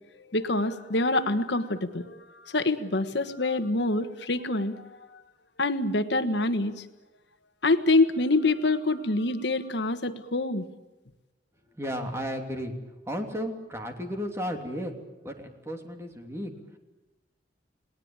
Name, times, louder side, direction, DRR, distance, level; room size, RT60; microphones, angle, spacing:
voice 1, 0.3-2.2 2.5-4.9 5.6-6.7 7.6-10.6, left 2 dB, 65° left, 9 dB, 1.4 m, -25 dB
voice 2, 11.8-12.7 13.1-14.9 15.2-16.5, equal, 15° right, 4 dB, 3.0 m, -33 dB
29.5 x 20.0 x 8.9 m, 1.1 s
head